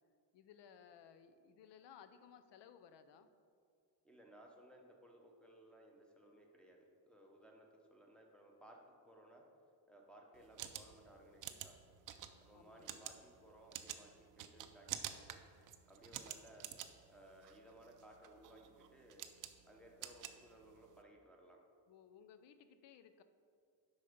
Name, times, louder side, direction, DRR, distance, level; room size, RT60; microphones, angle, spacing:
voice 1, 0.3-3.3 12.5-13.1 21.9-23.2, left 8 dB, 70° left, 10 dB, 0.7 m, -60 dB
voice 2, 4.0-9.4 9.9-11.8 12.4-15.4 15.9-16.7 17.1-19.3 19.7-21.6, right 1 dB, ahead, 0 dB, 0.7 m, -61 dB
sound 1, 10.3-21.0, right 10 dB, 50° right, 0.5 m, -50 dB
8.2 x 5.6 x 5.0 m, 2.3 s
cardioid pair, 180°, 43 cm